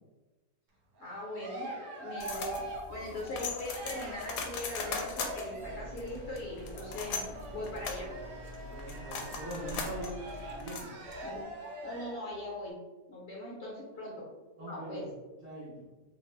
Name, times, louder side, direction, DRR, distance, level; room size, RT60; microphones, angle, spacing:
voice 1, 1.0-1.7 2.0-2.6 2.9-8.1 11.2-11.4 11.8-12.8 13.1-14.3 14.6-15.1, left 1 dB, 50° left, -4 dB, 0.9 m, -40 dB
Cheering, 1.0-6.0 6.7-12.3, right 1 dB, 75° right, 1.1 m, -43 dB
sound 1, 2.2-11.4, left 4 dB, 80° left, 1.1 m, -40 dB
sound 2, 5.6-10.7, equal, 5° right, 0.5 m, -47 dB
voice 2, 8.6-10.2 10.6-10.9 13.9-14.1 14.6-15.1 15.4-15.9, right 1 dB, 45° right, -10 dB, 0.7 m, -42 dB
2.9 x 2.1 x 3.2 m, 1.1 s
omnidirectional pair, 1.7 m